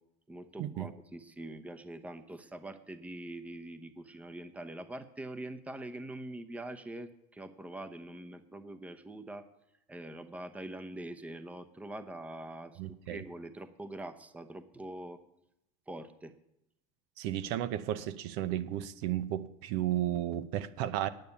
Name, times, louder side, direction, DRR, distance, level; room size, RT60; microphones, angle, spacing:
voice 1, 0.3-9.5 9.9-12.8 13.1-15.2 15.9-16.3, right 1 dB, 10° right, 10 dB, 0.8 m, -44 dB
voice 2, 12.8-13.2 17.2-21.1, right 12 dB, 70° right, 13 dB, 0.8 m, -33 dB
9.2 x 8.6 x 9.6 m, 0.84 s
supercardioid pair, 120°, 18 cm